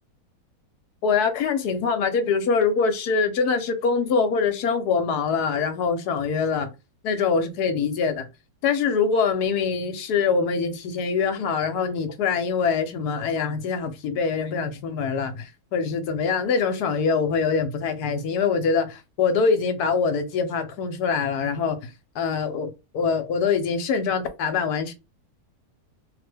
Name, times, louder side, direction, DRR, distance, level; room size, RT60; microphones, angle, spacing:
voice 1, 1.0-6.7 7.0-8.3 8.6-21.9 22.1-24.9, left 5 dB, 70° left, 1.1 m, -24 dB
3.1 x 2.1 x 3.3 m
omnidirectional pair, 1.8 m